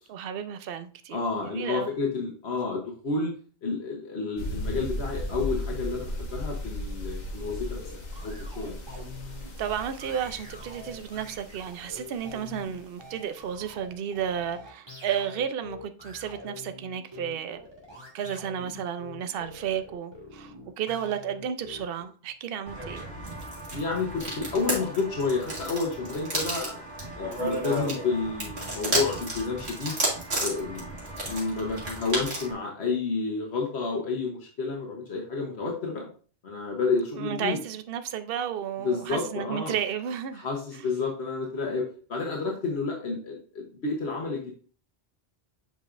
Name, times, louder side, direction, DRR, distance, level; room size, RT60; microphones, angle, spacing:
voice 1, 0.1-1.9 9.6-17.7 18.1-23.1 37.2-40.5 40.7-40.9, right 9 dB, 65° right, 0.8 m, -33 dB
voice 2, 1.1-3.3 3.6-7.8 8.2-8.8 23.7-26.8 27.1-30.0 30.4-30.9 31.2-36.1 36.4-37.6 38.8-39.8 40.3-44.5, left 4 dB, 80° left, 1.3 m, -30 dB
sound 1, 4.4-12.8, left 1 dB, 45° left, 1.2 m, -36 dB
sound 2, 7.5-22.0, left 3 dB, 25° right, 2.0 m, -45 dB
sound 3, 22.7-32.5, right 1 dB, 80° right, 2.2 m, -33 dB
7.4 x 5.1 x 2.5 m
omnidirectional pair, 1.1 m